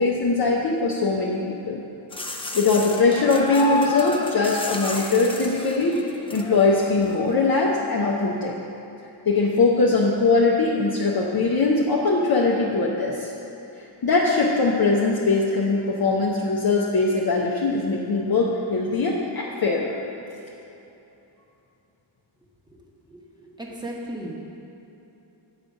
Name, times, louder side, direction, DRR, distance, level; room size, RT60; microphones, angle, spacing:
voice 1, 0.0-1.8 2.5-6.0 6.3-8.5 9.3-13.3 14.0-20.0, left 3 dB, 50° left, -3 dB, 0.7 m, -21 dB
sound 1, 2.1-7.2, left 2 dB, 10° left, 0.5 m, -31 dB
voice 2, 22.7-24.3, right 1 dB, 10° right, -3 dB, 1.0 m, -37 dB
7.0 x 4.9 x 5.2 m, 3.0 s
wide cardioid pair, 75°, 47 cm